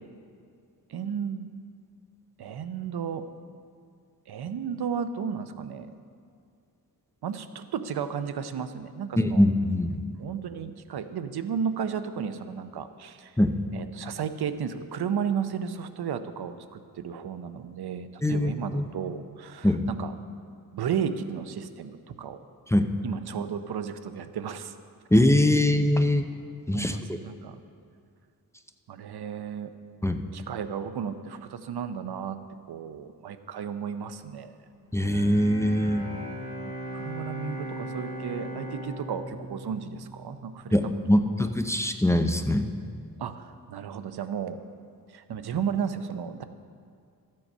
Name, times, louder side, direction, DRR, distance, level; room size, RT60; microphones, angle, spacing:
voice 1, 0.9-1.5 2.4-3.3 4.3-5.9 7.2-9.4 10.2-13.3 13.7-20.1 20.7-22.4 23.0-24.7 26.7-27.6 28.9-29.7 30.3-32.4 32.7-34.6 36.9-40.8 41.3-41.4 43.2-44.6 45.1-46.4, right 7 dB, 90° right, 10 dB, 0.6 m, -33 dB
voice 2, 9.2-10.0 13.4-13.6 18.2-18.9 19.6-19.9 22.7-22.9 25.1-26.3 26.7-27.0 30.0-30.2 34.9-36.1 40.7-42.7, left 1 dB, 10° left, 7 dB, 0.5 m, -22 dB
Bowed string instrument, 34.9-41.0, right 1 dB, 45° right, 3.1 m, -38 dB
13.5 x 7.6 x 5.4 m, 2.3 s
wide cardioid pair, 120°, 37 cm